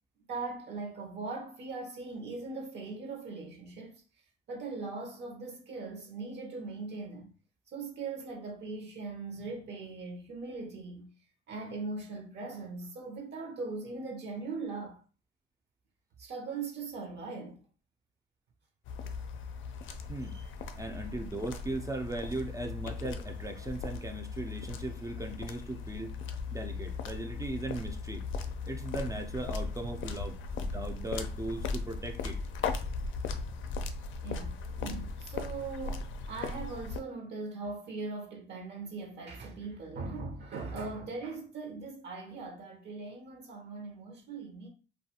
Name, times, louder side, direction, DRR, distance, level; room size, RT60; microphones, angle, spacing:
voice 1, 0.3-4.0 4.5-7.3 7.7-11.1 11.5-15.0 16.2-17.6 20.2-20.5 34.2-44.7, right 3 dB, 60° right, 0.7 m, -40 dB
sound 1, 18.9-37.0, left 4 dB, 75° left, 0.4 m, -38 dB
voice 2, 20.8-26.2 26.5-32.4, right 2 dB, 15° right, 0.4 m, -38 dB
2.3 x 2.3 x 2.8 m
cardioid pair, 90°, 20 cm